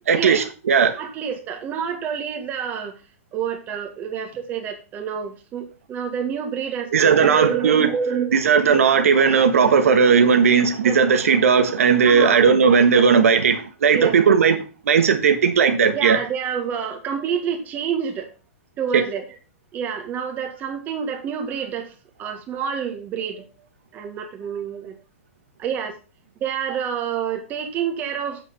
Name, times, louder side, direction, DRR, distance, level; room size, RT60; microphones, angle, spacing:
voice 1, 0.1-1.0 6.9-7.9 8.3-16.2, right 6 dB, 85° right, 1.4 m, -17 dB
voice 2, 1.0-3.0 3.3-8.8 10.8-11.0 12.0-12.4 12.9-13.0 13.9-14.1 15.9-18.3 18.8-19.3 19.7-23.5 23.9-25.0 25.6-25.9 26.4-28.4, right 7 dB, 25° right, 1.7 m, -28 dB
7.6 x 5.9 x 5.7 m
hypercardioid pair, 150°, 8 cm